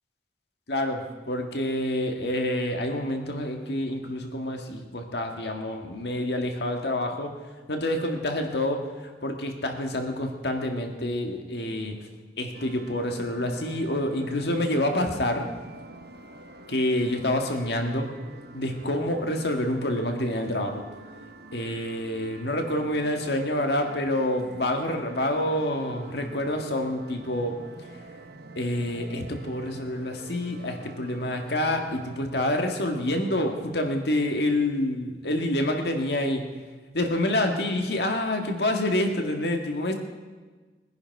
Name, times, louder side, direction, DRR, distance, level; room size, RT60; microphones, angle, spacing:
voice 1, 0.7-7.3 7.7-12.0 12.4-15.5 16.7-18.1 18.5-20.8 21.5-27.6 28.6-36.4 36.9-39.9, left 1 dB, 65° left, 4 dB, 1.8 m, -27 dB
sound 1, 12.5-32.2, right 2 dB, 60° right, 0.9 m, -46 dB
21.5 x 10.5 x 4.6 m, 1.3 s
head